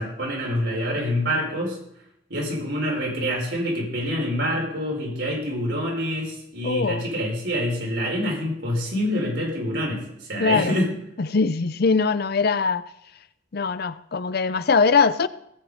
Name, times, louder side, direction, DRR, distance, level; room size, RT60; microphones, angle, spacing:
voice 1, 0.0-1.8 2.3-10.9, equal, 65° right, 5.0 m, -26 dB
voice 2, 6.6-7.0 10.4-10.8 11.2-12.8 13.5-15.3, left 4 dB, 55° left, 0.6 m, -21 dB
18.5 x 7.7 x 5.1 m
head